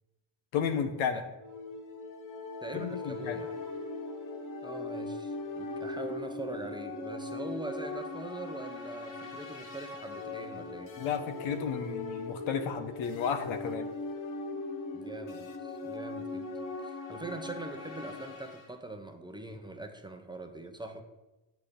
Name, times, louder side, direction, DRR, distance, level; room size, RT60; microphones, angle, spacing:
voice 1, 0.5-1.2 2.7-3.4 11.0-13.9, left 7 dB, 75° left, 8 dB, 1.3 m, -33 dB
sound 1, 1.4-18.7, left 3 dB, 40° left, 1.5 m, -40 dB
voice 2, 2.6-3.5 4.6-10.9 14.9-16.5 16.8-21.0, right 2 dB, 10° right, 4 dB, 0.9 m, -42 dB
9.5 x 8.3 x 5.3 m, 1.1 s
cardioid pair, 130°, 49 cm